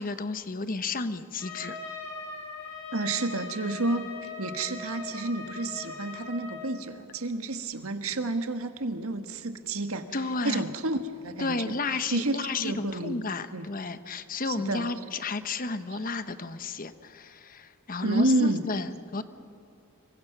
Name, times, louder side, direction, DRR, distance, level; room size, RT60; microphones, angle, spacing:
voice 1, 0.0-1.8 10.1-10.6 11.4-19.2, left 3 dB, 40° left, 11 dB, 1.0 m, -32 dB
Trumpet, 1.4-6.7, left 4 dB, 70° left, 6.1 m, -40 dB
voice 2, 2.9-10.1 10.4-11.7 12.1-13.2 13.5-13.7 14.5-14.9 18.0-18.6, right 2 dB, 80° right, 7 dB, 1.6 m, -30 dB
26.5 x 23.5 x 6.0 m, 2.6 s
head